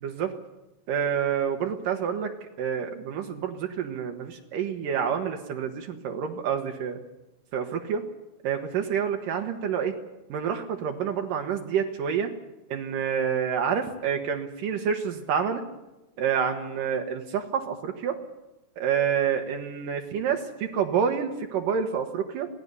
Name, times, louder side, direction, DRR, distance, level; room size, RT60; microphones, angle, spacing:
voice 1, 0.0-0.3 0.9-2.3 2.6-7.0 7.5-8.0 8.4-9.9 10.3-12.3 12.7-15.6 16.2-18.2 18.8-22.5, right 7 dB, 75° right, 4 dB, 2.9 m, -28 dB
27.0 x 18.5 x 6.9 m, 1.0 s
omnidirectional pair, 3.9 m